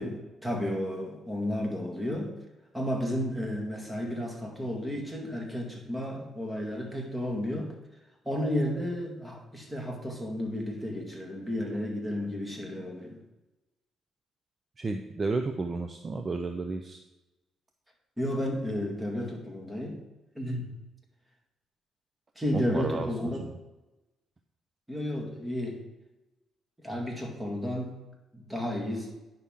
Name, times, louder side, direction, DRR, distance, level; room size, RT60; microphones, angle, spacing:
voice 1, 0.0-2.4 2.7-7.7 8.3-13.2 18.2-20.0 20.4-20.7 22.4-23.4 24.9-25.8 26.8-28.0 28.3-29.1, left 1 dB, 10° right, 0 dB, 2.0 m, -32 dB
voice 2, 14.8-17.0 22.5-23.5, right 3 dB, 30° right, 6 dB, 0.6 m, -32 dB
9.9 x 5.9 x 3.7 m, 1.0 s
cardioid pair, 90°, 0 cm